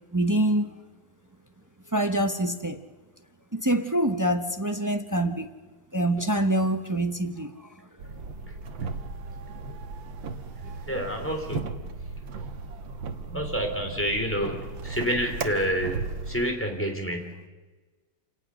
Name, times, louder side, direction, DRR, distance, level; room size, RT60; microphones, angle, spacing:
voice 1, 0.1-0.7 1.9-2.8 3.5-5.4 5.9-7.7 10.6-10.7, right 1 dB, 20° right, 6 dB, 0.5 m, -25 dB
sound 1, 8.0-16.5, right 4 dB, 90° right, 2.1 m, -36 dB
voice 2, 10.9-11.7 13.3-16.0 16.3-17.5, equal, 5° left, 2 dB, 3.3 m, -28 dB
28.0 x 18.0 x 6.4 m, 1.3 s
omnidirectional pair, 2.0 m